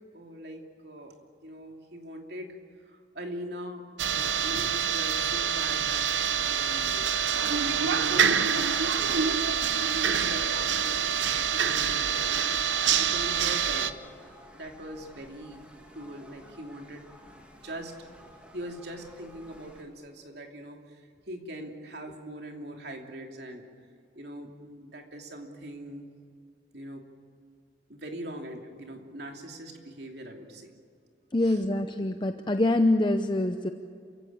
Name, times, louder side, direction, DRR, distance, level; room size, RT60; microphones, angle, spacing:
voice 1, 0.1-1.2 1.4-8.4 8.9-9.4 10.0-12.2 13.0-14.3 14.5-17.1 17.5-17.9 18.5-23.6 24.1-26.1 26.7-27.1 27.9-30.7 31.4-31.6, right 1 dB, 65° right, 2 dB, 2.9 m, -42 dB
sound 1, 4.0-13.9, right 7 dB, 85° right, 0.9 m, -26 dB
sound 2, 12.0-19.8, equal, 5° right, 2.6 m, -53 dB
voice 2, 31.3-33.7, left 1 dB, 25° left, 7 dB, 0.7 m, -25 dB
28.0 x 16.0 x 8.8 m, 2.3 s
head